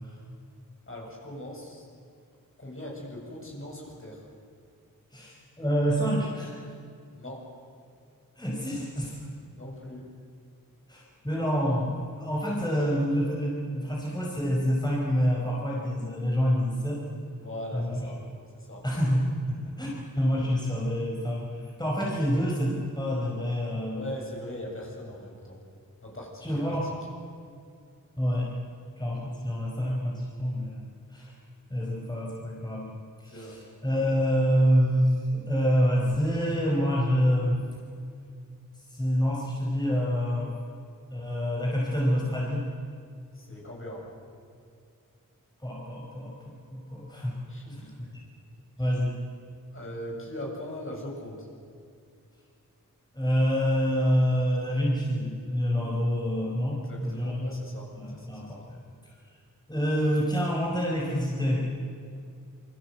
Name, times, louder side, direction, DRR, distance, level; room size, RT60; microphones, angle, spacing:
voice 1, 0.9-1.8 2.6-4.2 7.1-7.5 9.5-10.1 17.4-18.2 18.5-18.9 23.9-25.6 26.0-26.9 33.3-33.6 43.3-44.0 47.5-47.9 48.8-48.9 49.7-51.5 56.9-58.6, left 1 dB, 40° left, -1 dB, 7.8 m, -40 dB
voice 2, 5.1-6.5 8.4-9.2 10.9-17.0 17.7-18.1 18.8-24.1 26.4-26.9 28.2-28.5 29.0-30.9 31.1-31.3 31.7-37.6 38.9-40.5 41.1-42.6 45.6-46.3 46.7-47.4 47.7-47.9 48.8-49.2 53.1-57.5 57.9-58.8 59.7-61.7, equal, 10° left, -3 dB, 5.5 m, -27 dB
28.0 x 24.5 x 8.0 m, 2.3 s
wide cardioid pair, 90°, 34 cm